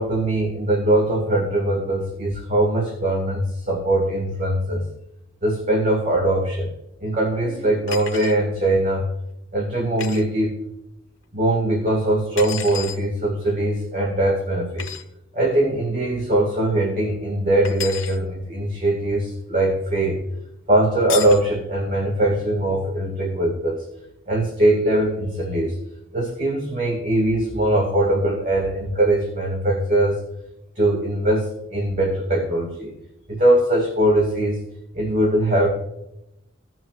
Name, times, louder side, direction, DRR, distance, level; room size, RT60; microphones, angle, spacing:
voice 1, 0.0-4.9 5.4-6.7 7.0-9.0 9.5-10.6 11.3-14.9 15.3-20.2 20.7-23.8 24.3-25.8 26.1-30.2 30.8-32.9 33.3-34.6 34.9-35.7, right 1 dB, 45° right, -1 dB, 1.7 m, -21 dB
sound 1, 7.9-8.4 10.0-10.2 12.4-13.0 14.8-15.0 17.6-18.2 21.1-21.5, left 9 dB, 90° left, 1.4 m, -31 dB
17.5 x 6.2 x 2.4 m, 0.87 s
head